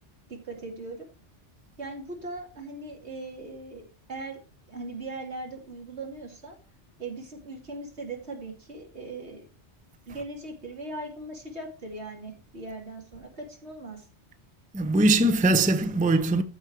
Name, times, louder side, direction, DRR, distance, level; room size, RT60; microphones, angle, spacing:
voice 1, 0.3-1.1 1.8-4.4 4.7-6.6 7.0-9.5 10.1-14.1, right 2 dB, 70° right, 2.6 m, -39 dB
voice 2, 14.7-16.4, right 2 dB, 10° right, 0.5 m, -22 dB
13.5 x 4.7 x 4.6 m
omnidirectional pair, 1.2 m